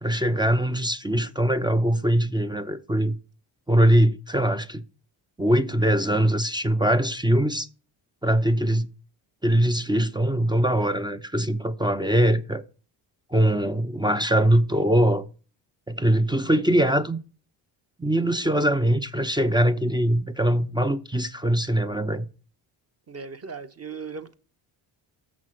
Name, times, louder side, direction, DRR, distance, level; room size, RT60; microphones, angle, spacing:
voice 1, 0.0-3.2 3.7-4.8 5.4-7.7 8.2-8.9 9.4-12.6 13.3-15.3 15.9-17.2 18.0-22.3, right 1 dB, 10° right, 0.5 m, -22 dB
voice 2, 23.1-24.3, right 5 dB, 30° right, 1.0 m, -37 dB
6.7 x 6.2 x 6.2 m
cardioid pair, 90°, 49 cm